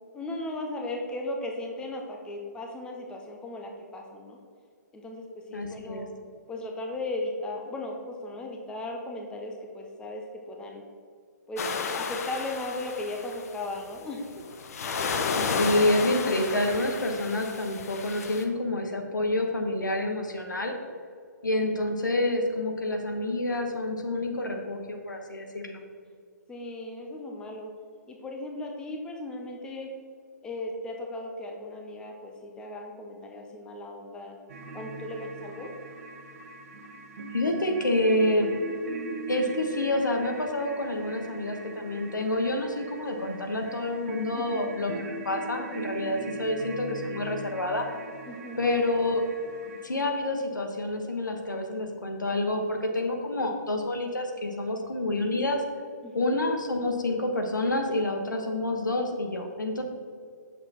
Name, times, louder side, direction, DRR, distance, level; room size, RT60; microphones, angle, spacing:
voice 1, 0.1-4.4 4.9-6.1 6.5-10.8 11.5-11.6 11.9-14.3 26.5-27.7 28.1-29.9 30.4-34.4 34.7-35.7 44.3-44.7 48.3-48.6 56.0-56.4, left 2 dB, 10° left, 1 dB, 0.6 m, -37 dB
voice 2, 5.5-6.1 15.4-20.7 21.4-25.8 37.3-38.5 39.3-47.9 48.6-49.2 49.8-55.6 56.1-59.8, left 1 dB, 80° left, 3 dB, 1.2 m, -28 dB
sound 1, 11.6-13.8 14.3-18.4, left 5 dB, 55° left, 0.7 m, -32 dB
sound 2, 34.5-49.8, right 3 dB, 45° right, 1.0 m, -40 dB
7.7 x 6.6 x 2.9 m, 2.2 s
figure-of-eight pair, 130°, 10 cm